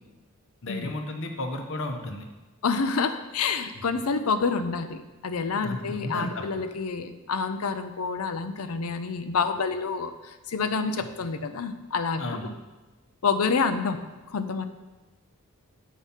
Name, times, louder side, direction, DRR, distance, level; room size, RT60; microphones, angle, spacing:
voice 1, 0.6-2.3 5.6-6.6 12.2-12.5, left 2 dB, 60° left, 4 dB, 0.9 m, -33 dB
voice 2, 2.6-12.5 13.2-14.0 14.3-14.7, left 4 dB, 80° left, 10 dB, 0.6 m, -28 dB
7.4 x 4.8 x 5.6 m, 1.1 s
head